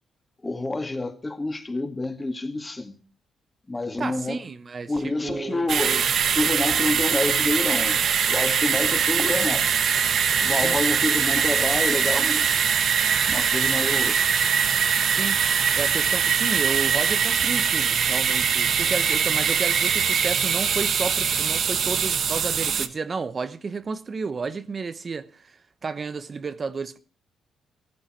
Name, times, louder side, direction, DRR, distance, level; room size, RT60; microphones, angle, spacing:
voice 1, 0.4-3.0 3.7-4.4 4.9-8.0 8.3-9.8 10.4-12.7 13.2-14.2, left 2 dB, 20° left, 2.3 m, -28 dB
voice 2, 4.0-6.0 10.6-10.8 15.1-15.4 15.8-25.6 25.8-27.0, right 4 dB, 35° right, 0.9 m, -32 dB
sound 1, 5.7-22.9, right 7 dB, 60° right, 1.3 m, -22 dB
sound 2, 9.1-22.2, left 5 dB, 55° left, 3.2 m, -46 dB
15.5 x 14.0 x 4.5 m
cardioid pair, 90°, 0 cm